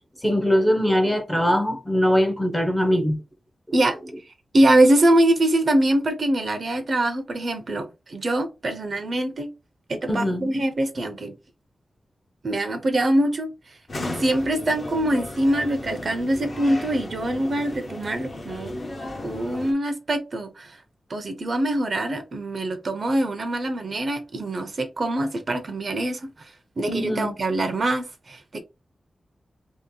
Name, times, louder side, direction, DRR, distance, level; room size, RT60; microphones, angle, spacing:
voice 1, 0.2-3.2 10.1-10.6 26.9-27.3, equal, 5° left, 0.7 m, -22 dB
voice 2, 4.5-9.5 9.9-11.3 12.4-13.5 14.2-18.7 19.2-20.8 21.1-26.3 26.8-28.6, right 1 dB, 45° right, 0.6 m, -23 dB
sound 1, 13.9-19.7, left 1 dB, 40° left, 0.9 m, -35 dB
3.0 x 2.8 x 3.8 m
wide cardioid pair, 175°, 0 cm